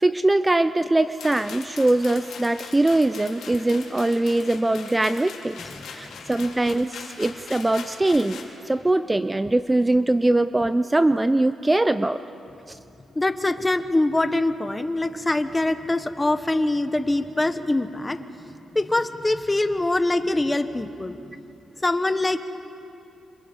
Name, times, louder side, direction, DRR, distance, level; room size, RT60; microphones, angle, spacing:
voice 1, 0.0-5.6 5.9-12.2 12.7-12.8, right 2 dB, 15° right, 12 dB, 0.6 m, -22 dB
sound 1, 1.2-8.5, left 5 dB, 85° left, 4.0 m, -41 dB
voice 2, 5.6-6.2 13.1-18.2 18.7-21.2 21.8-22.4, left 2 dB, 20° left, 9 dB, 1.4 m, -24 dB
27.5 x 27.5 x 5.5 m, 2.8 s
cardioid pair, 80°, 0 cm